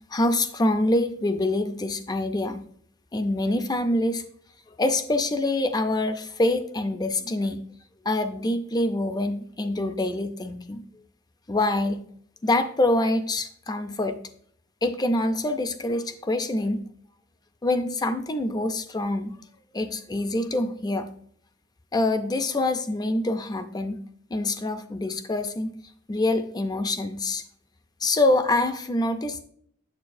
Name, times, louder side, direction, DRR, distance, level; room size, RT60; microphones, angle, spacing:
voice 1, 0.1-2.7 3.1-4.2 4.8-7.6 8.0-10.8 11.5-12.1 12.4-14.2 14.8-16.8 17.6-19.4 19.7-21.1 21.9-24.0 24.3-25.7 26.1-27.4 28.0-29.4, left 2 dB, 20° left, 9 dB, 0.4 m, -25 dB
7.4 x 6.6 x 2.6 m, 0.63 s
head